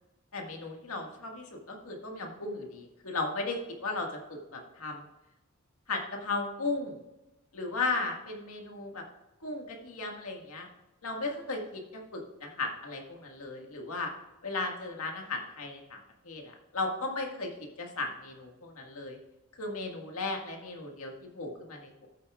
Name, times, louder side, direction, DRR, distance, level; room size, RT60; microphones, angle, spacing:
voice 1, 0.3-5.1 5.9-7.0 7.5-9.0 9.4-10.7 11.0-14.1 14.4-16.0 16.2-19.2 19.6-22.1, left 3 dB, 80° left, 1 dB, 1.8 m, -36 dB
14.0 x 8.5 x 2.4 m, 0.99 s
head